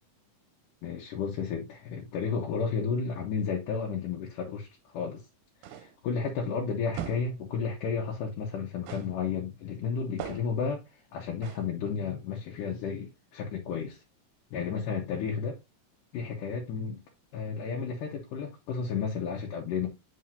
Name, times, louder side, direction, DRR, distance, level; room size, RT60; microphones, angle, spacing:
voice 1, 0.8-5.2 5.7-10.8 11.1-14.0 14.5-15.6 16.1-17.0 17.3-19.9, left 6 dB, 85° left, 2.6 m, -32 dB
sound 1, 5.6-6.0 6.9-7.4 8.9-9.2 10.2-10.6 11.4-11.7, right 10 dB, 90° right, 2.2 m, -40 dB
7.6 x 5.3 x 2.6 m
omnidirectional pair, 3.7 m